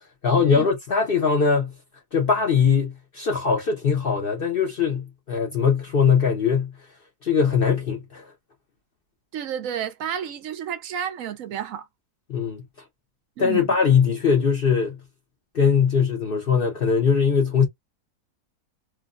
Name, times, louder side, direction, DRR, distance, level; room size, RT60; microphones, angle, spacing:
voice 1, 0.2-1.7 2.1-6.7 7.2-8.2 12.3-12.6 13.4-15.0 15.5-17.7, left 6 dB, 50° left, 0.7 m, -21 dB
voice 2, 9.3-11.9 13.4-13.7, right 9 dB, 65° right, 0.9 m, -31 dB
3.1 x 2.3 x 2.4 m
omnidirectional pair, 1.6 m